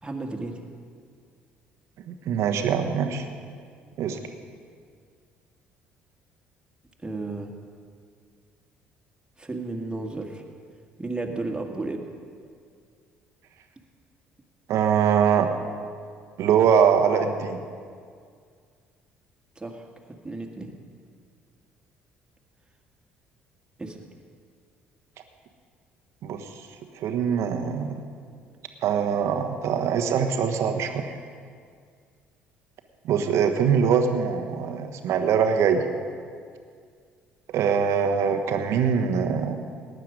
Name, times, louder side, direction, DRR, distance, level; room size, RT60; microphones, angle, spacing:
voice 1, 0.0-0.6 7.0-7.5 9.4-10.4 11.0-12.0 19.6-20.7 23.8-24.0, right 2 dB, 15° right, 2 dB, 2.1 m, -33 dB
voice 2, 2.1-3.2 4.0-4.2 14.7-15.5 16.4-17.6 26.2-26.5 27.0-28.0 28.8-31.1 33.0-35.8 37.5-39.5, right 7 dB, 55° right, 6 dB, 1.3 m, -23 dB
19.0 x 9.3 x 5.2 m, 2.1 s
figure-of-eight pair, 50°, 6 cm